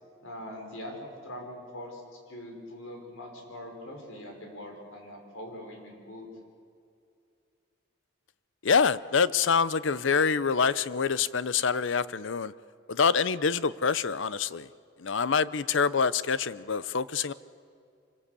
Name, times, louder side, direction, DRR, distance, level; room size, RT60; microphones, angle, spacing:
voice 1, 0.2-2.0 2.3-6.3, left 1 dB, 85° left, 2 dB, 5.3 m, -42 dB
voice 2, 8.6-12.5 12.9-14.7 15.0-17.3, left 5 dB, 70° left, 16 dB, 0.6 m, -26 dB
25.5 x 20.5 x 8.4 m, 2.4 s
head